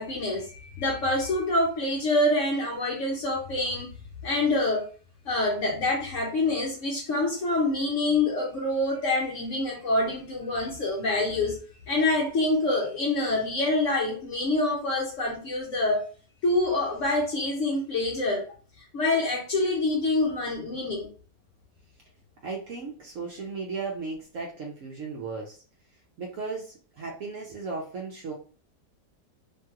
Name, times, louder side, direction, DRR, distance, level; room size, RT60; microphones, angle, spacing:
voice 1, 0.0-3.9 4.2-4.9 5.3-11.6 11.9-16.1 16.4-18.4 18.9-21.1, left 2 dB, 65° left, 0.8 m, -26 dB
voice 2, 22.4-25.6 26.2-28.3, right 4 dB, 65° right, 0.8 m, -35 dB
2.9 x 2.9 x 2.3 m
omnidirectional pair, 1.8 m